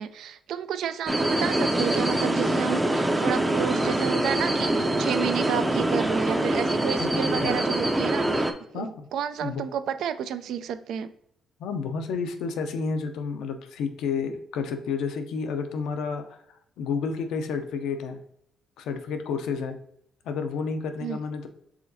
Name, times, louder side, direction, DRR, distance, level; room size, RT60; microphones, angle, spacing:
voice 1, 0.0-11.1 21.0-21.2, right 8 dB, 75° right, 11 dB, 0.3 m, -31 dB
sound 1, 1.1-8.5, right 1 dB, 15° right, 0.5 m, -24 dB
voice 2, 7.0-7.5 8.7-9.1 9.4-9.6 11.6-16.4 16.8-18.2 18.8-19.8 20.3-21.5, left 5 dB, 85° left, 7 dB, 0.5 m, -30 dB
4.9 x 3.7 x 2.7 m, 0.73 s
cardioid pair, 90°, 0 cm